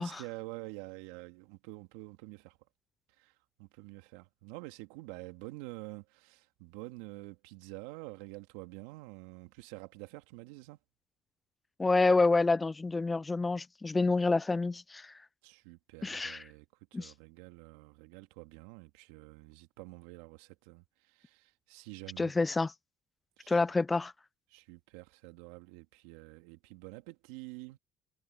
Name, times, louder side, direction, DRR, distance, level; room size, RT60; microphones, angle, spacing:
voice 1, 0.0-2.6 3.2-3.3 3.6-10.8 15.4-16.7 16.9-22.3 23.4-23.6 24.5-27.8, right 21 dB, 85° right, 2.4 m, -48 dB
voice 2, 11.8-15.1 16.0-16.4 16.9-17.1 22.2-22.7 23.5-24.1, left 3 dB, 20° left, 0.5 m, -28 dB
hypercardioid pair, 65°, 0 cm